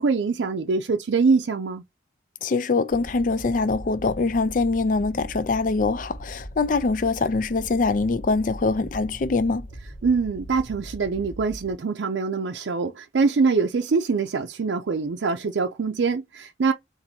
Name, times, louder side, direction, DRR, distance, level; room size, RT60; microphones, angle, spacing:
voice 1, 0.0-1.8 10.0-16.7, right 4 dB, 85° right, 0.5 m, -24 dB
voice 2, 2.4-9.7, left 3 dB, 45° left, 0.4 m, -23 dB
sound 1, 2.9-11.7, equal, 75° left, 1.2 m, -40 dB
4.0 x 2.6 x 4.3 m
head